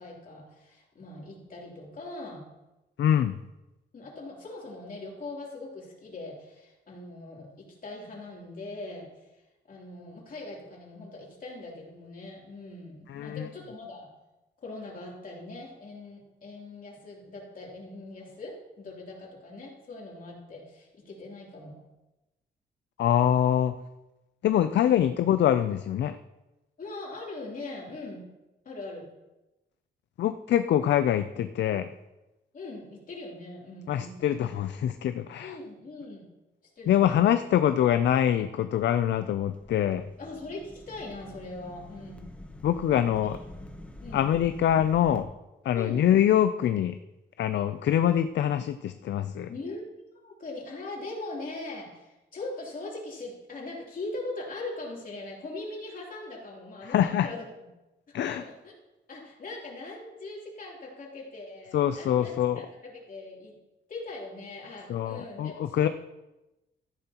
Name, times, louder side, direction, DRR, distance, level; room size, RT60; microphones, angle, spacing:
voice 1, 0.0-2.5 3.9-14.1 14.6-21.8 24.8-25.0 26.8-28.2 28.6-29.1 32.5-34.4 35.4-36.3 36.8-37.3 40.2-42.2 43.2-43.4 44.0-44.2 45.7-46.1 49.5-49.8 50.1-57.5 58.2-58.7 59.1-63.6 63.9-65.9, left 2 dB, 45° left, -3 dB, 3.1 m, -41 dB
voice 2, 3.0-3.3 13.1-13.4 23.0-23.7 24.4-26.1 30.2-31.9 33.9-35.5 36.9-40.1 42.6-43.4 44.1-45.3 45.7-46.9 47.4-49.5 56.9-57.3 58.1-58.4 61.7-62.6 64.9-65.9, left 10 dB, 70° left, 10 dB, 0.4 m, -24 dB
sound 1, 39.0-45.2, left 1 dB, 5° left, 0.9 m, -46 dB
13.5 x 10.5 x 2.9 m, 1.0 s
wide cardioid pair, 150°, 19 cm